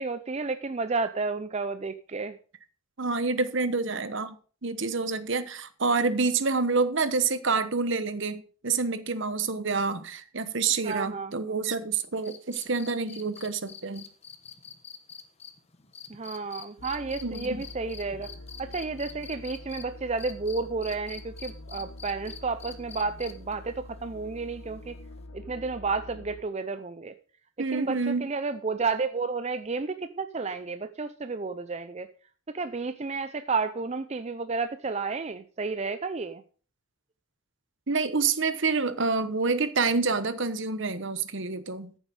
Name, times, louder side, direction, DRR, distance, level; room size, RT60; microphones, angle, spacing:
voice 1, 0.0-2.4 10.8-11.3 16.1-18.3 18.6-25.0 25.3-27.1 27.7-32.1 32.5-36.4, right 4 dB, 30° right, 0.5 m, -31 dB
voice 2, 3.0-4.4 4.6-14.1 17.2-17.6 27.6-28.3 37.9-42.0, right 4 dB, 55° right, 1.1 m, -28 dB
sound 1, 12.2-19.8 20.2-23.5 25.2-25.3, left 7 dB, 30° left, 1.2 m, -45 dB
sound 2, 16.8-26.4, left 2 dB, 70° left, 0.8 m, -46 dB
14.5 x 7.3 x 5.3 m
head